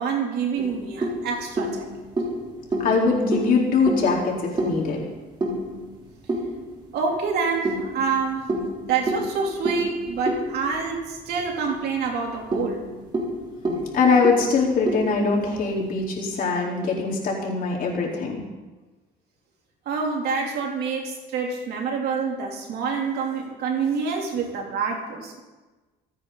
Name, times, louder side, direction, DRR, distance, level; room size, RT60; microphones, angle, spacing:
voice 1, 0.0-1.9 6.9-8.5 8.9-12.8 19.8-25.3, right 5 dB, 70° right, 0 dB, 3.4 m, -27 dB
sound 1, 0.6-7.0 7.7-11.5 11.8-11.9 12.3-15.9, right 1 dB, 25° right, 3.6 m, -29 dB
voice 2, 2.8-5.0 13.9-18.4, left 4 dB, 55° left, -2 dB, 4.2 m, -22 dB
25.0 x 9.6 x 4.1 m, 1.2 s
cardioid pair, 110°, 17 cm